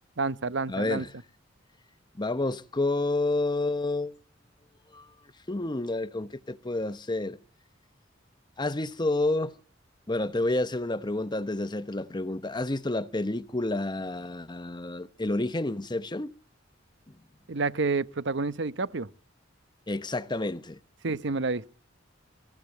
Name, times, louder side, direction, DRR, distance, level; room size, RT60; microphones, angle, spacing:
voice 1, 0.2-1.0 17.5-19.1 21.0-21.7, right 3 dB, 65° right, 0.9 m, -29 dB
voice 2, 0.7-1.1 2.2-4.1 4.9-5.1 5.5-7.4 8.6-9.6 10.1-16.3 19.9-20.8, left 2 dB, 25° left, 1.0 m, -29 dB
25.0 x 14.5 x 7.8 m
head